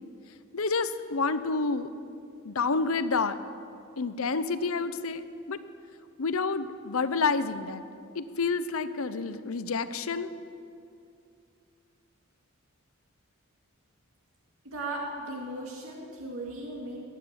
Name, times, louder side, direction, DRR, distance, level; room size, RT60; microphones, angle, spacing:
voice 1, 0.5-1.9 2.4-3.4 4.0-5.6 6.2-7.8 8.1-10.3, left 4 dB, 75° left, 12 dB, 0.7 m, -29 dB
voice 2, 14.6-17.0, right 1 dB, 80° right, -2 dB, 2.2 m, -37 dB
20.0 x 9.3 x 7.5 m, 2.5 s
head